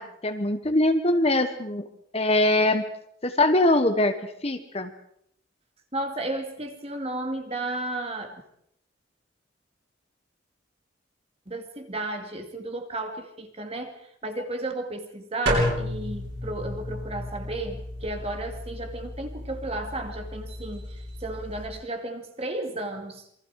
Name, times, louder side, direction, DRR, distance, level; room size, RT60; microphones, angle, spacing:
voice 1, 0.0-1.9 2.1-2.8 3.2-4.2 4.4-4.9, left 1 dB, 30° left, 8 dB, 1.3 m, -22 dB
voice 2, 5.9-8.4 11.5-14.0 14.2-23.3, right 2 dB, 30° right, 6 dB, 2.2 m, -33 dB
sound 1, 15.5-21.7, equal, 60° right, 8.0 m, -32 dB
27.5 x 23.5 x 4.9 m, 0.71 s
head